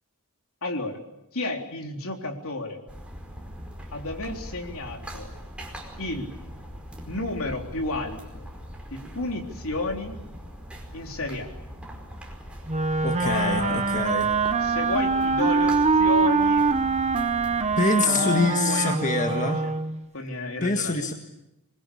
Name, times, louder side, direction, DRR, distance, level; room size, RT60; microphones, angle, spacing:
voice 1, 0.6-1.0 1.3-2.9 3.9-5.3 6.0-6.3 7.1-8.5 8.9-10.2 10.9-11.5 13.2-14.0 14.6-16.7 17.9-19.7 20.1-21.1, left 2 dB, 70° left, 3 dB, 3.7 m, -32 dB
sound 1, 2.9-17.8, equal, 5° right, 5.0 m, -41 dB
Wind instrument woodwind instrument, 12.7-20.0, right 4 dB, 30° right, 1.3 m, -24 dB
voice 2, 13.0-14.3 17.8-19.6 20.6-21.1, left 3 dB, 35° left, 4 dB, 1.9 m, -25 dB
26.0 x 22.0 x 8.6 m, 0.88 s
head